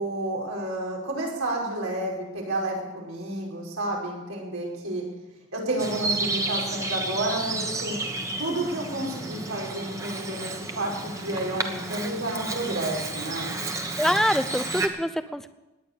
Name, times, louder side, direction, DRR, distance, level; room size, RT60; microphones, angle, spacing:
voice 1, 0.0-5.0 5.5-8.0 8.4-13.6, right 1 dB, 85° right, -2 dB, 5.5 m, -30 dB
Bird vocalization bird call bird song, 5.8-14.9, right 2 dB, 15° right, 1.2 m, -32 dB
voice 2, 14.0-15.5, equal, ahead, 12 dB, 0.5 m, -25 dB
17.5 x 10.5 x 6.9 m, 1.0 s
head